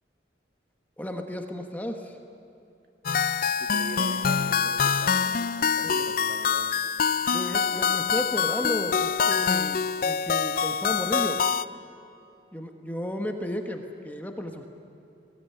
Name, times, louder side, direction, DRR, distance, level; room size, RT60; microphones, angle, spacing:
voice 1, 1.0-2.2 5.8-6.1 7.3-11.4 12.5-14.7, left 1 dB, 10° left, 4 dB, 1.2 m, -33 dB
sound 1, 3.1-11.7, left 6 dB, 50° left, 0.5 m, -25 dB
voice 2, 3.6-5.3 5.6-6.7, right 2 dB, 55° right, 3 dB, 2.0 m, -41 dB
21.0 x 17.5 x 9.5 m, 2.6 s
head